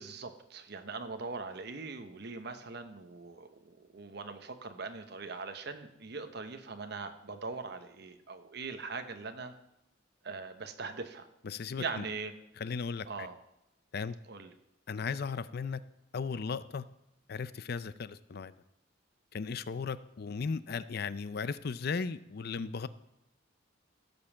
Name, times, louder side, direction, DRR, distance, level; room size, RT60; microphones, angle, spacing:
voice 1, 0.0-9.5 10.2-11.3 11.8-12.3 13.1-13.3 14.3-14.5, right 4 dB, 60° right, 7 dB, 1.0 m, -41 dB
voice 2, 11.4-12.0 12.6-13.3 13.9-14.1 14.9-15.8 16.1-16.8 17.3-18.5 19.3-22.9, left 5 dB, 55° left, 15 dB, 0.5 m, -36 dB
16.0 x 5.4 x 7.2 m, 0.84 s
head